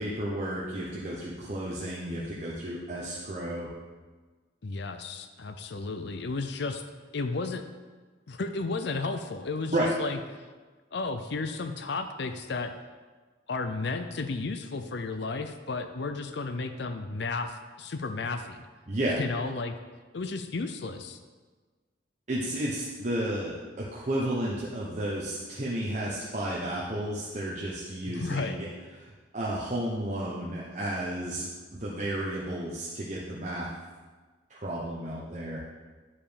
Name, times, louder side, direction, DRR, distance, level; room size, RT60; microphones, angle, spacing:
voice 1, 0.0-3.7 9.7-9.9 18.9-19.2 22.3-28.7 29.0-33.7 34.5-35.7, right 1 dB, 40° right, -5 dB, 0.9 m, -32 dB
voice 2, 4.6-6.8 7.1-7.6 8.3-10.2 10.9-12.7 13.5-18.7 19.2-19.8 20.1-21.2 28.1-28.6, left 3 dB, 60° left, 8 dB, 0.5 m, -33 dB
9.8 x 5.0 x 5.1 m, 1.4 s
head